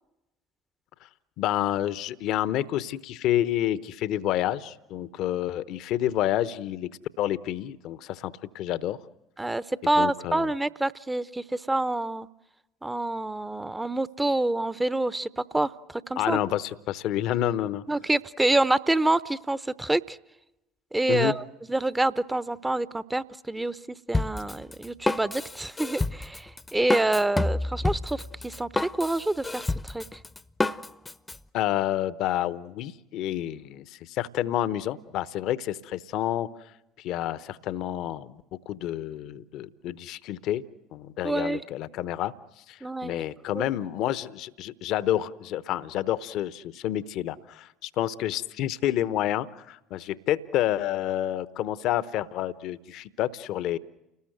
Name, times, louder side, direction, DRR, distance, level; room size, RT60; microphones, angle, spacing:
voice 1, 1.4-6.9 7.2-9.0 10.0-10.5 16.2-17.8 21.1-21.3 31.5-36.5 37.0-40.6 40.9-42.3 42.7-53.8, left 12 dB, 55° left, 16 dB, 1.0 m, -29 dB
voice 2, 9.4-12.3 12.8-16.4 17.9-20.2 20.9-21.4 21.7-23.8 24.1-30.0 41.2-41.6 42.8-43.2 43.5-43.7, right 2 dB, 10° right, 16 dB, 0.9 m, -27 dB
Drum kit, 24.1-31.4, left 2 dB, 15° left, 0.9 m, -29 dB
29.5 x 20.0 x 8.0 m, 0.96 s
figure-of-eight pair, 60°, 0 cm